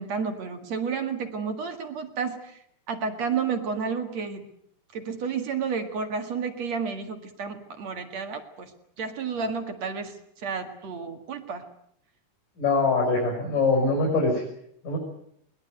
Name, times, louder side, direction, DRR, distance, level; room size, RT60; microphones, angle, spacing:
voice 1, 0.0-2.6 2.9-4.4 4.9-8.7 9.0-10.1 10.4-11.6, right 5 dB, 50° right, 7 dB, 2.7 m, -31 dB
voice 2, 12.6-14.4 14.8-15.0, left 3 dB, 55° left, -2 dB, 7.5 m, -23 dB
22.0 x 20.5 x 9.3 m, 0.70 s
omnidirectional pair, 4.5 m